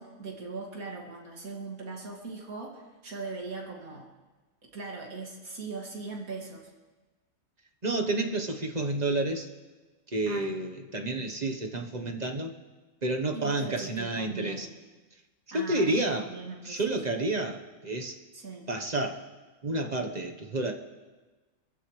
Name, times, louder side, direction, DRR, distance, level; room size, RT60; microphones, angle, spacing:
voice 1, 0.0-4.1 4.6-6.7 10.3-10.6 13.3-14.7 15.5-16.8 18.3-18.7, right 4 dB, 75° right, -1 dB, 2.7 m, -40 dB
voice 2, 7.8-9.5 10.1-12.5 13.0-14.7 15.5-16.3 16.6-18.1 18.7-19.2 19.6-20.7, right 2 dB, 30° right, 3 dB, 1.2 m, -30 dB
26.5 x 15.5 x 3.2 m, 1.3 s
omnidirectional pair, 1.5 m